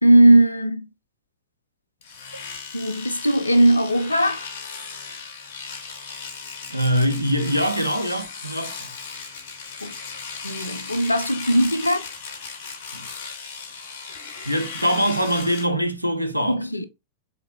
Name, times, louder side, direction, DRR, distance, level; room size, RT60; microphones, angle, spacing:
voice 1, 0.0-0.9 2.7-4.5 9.8-9.9 10.4-12.0 16.5-16.9, right 1 dB, 85° left, 0.4 m, -18 dB
Domestic sounds home sounds, 2.0-15.7, left 5 dB, 60° left, 0.9 m, -36 dB
voice 2, 6.7-8.9 12.9-13.1 14.4-16.6, equal, 90° right, 0.6 m, -23 dB
3.8 x 2.9 x 2.8 m
figure-of-eight pair, 90°, 0 cm